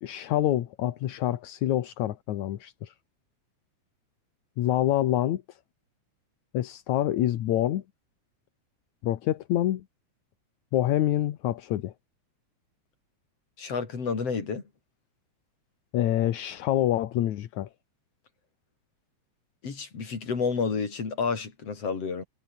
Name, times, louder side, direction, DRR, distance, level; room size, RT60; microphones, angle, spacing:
voice 1, 0.0-2.9 4.6-5.6 6.5-7.8 9.0-9.8 10.7-11.9 15.9-17.7, left 13 dB, 75° left, 2.6 m, -26 dB
voice 2, 13.6-14.6 19.6-22.3, left 5 dB, 55° left, 5.0 m, -30 dB
omnidirectional pair, 3.4 m